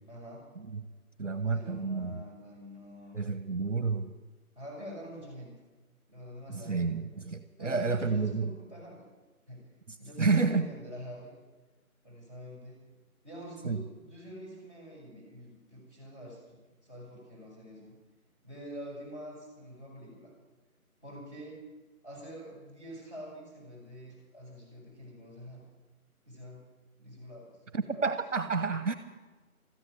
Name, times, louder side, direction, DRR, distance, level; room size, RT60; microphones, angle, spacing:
voice 1, 0.1-0.5 1.4-3.1 4.5-5.5 6.1-7.3 7.6-9.1 9.5-9.7 10.0-11.3 12.0-12.8 13.2-18.0 18.4-20.3 21.0-21.7 22.0-25.6 26.3-26.7 27.0-28.1, equal, 15° left, -6 dB, 5.8 m, -46 dB
voice 2, 1.2-2.2 3.1-4.1 6.5-8.5 9.9-10.7 13.6-13.8 27.7-28.9, right 4 dB, 55° right, 11 dB, 1.2 m, -30 dB
15.5 x 14.0 x 6.5 m, 1.3 s
figure-of-eight pair, 165°, 44 cm